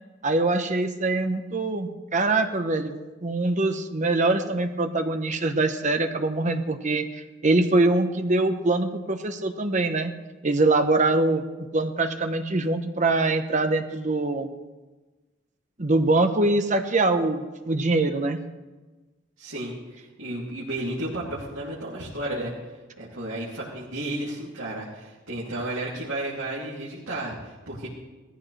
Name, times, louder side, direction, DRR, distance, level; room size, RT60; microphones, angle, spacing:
voice 1, 0.2-2.9 3.2-10.1 10.4-11.4 11.7-14.5 15.8-18.4, right 2 dB, 35° right, 7 dB, 1.0 m, -23 dB
voice 2, 19.4-22.5 23.0-27.9, right 1 dB, 80° right, -7 dB, 3.0 m, -33 dB
20.0 x 14.5 x 3.4 m, 1.2 s
head